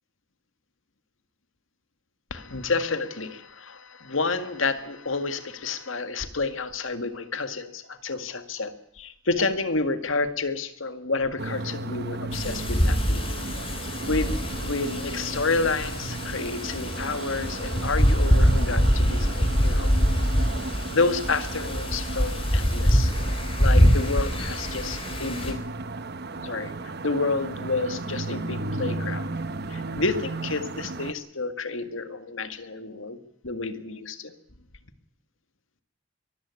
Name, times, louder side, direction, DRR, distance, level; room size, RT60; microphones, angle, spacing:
voice 1, 2.3-13.2 14.1-19.9 20.9-23.1 23.6-25.6 26.4-29.2 29.7-33.2 33.4-34.3, left 3 dB, 80° left, 10 dB, 1.9 m, -29 dB
sound 1, 11.4-31.1, right 2 dB, 55° right, 1.1 m, -35 dB
Wind, 12.3-25.5, equal, 30° left, 3.8 m, -24 dB
23.0 x 14.0 x 9.6 m, 0.75 s
head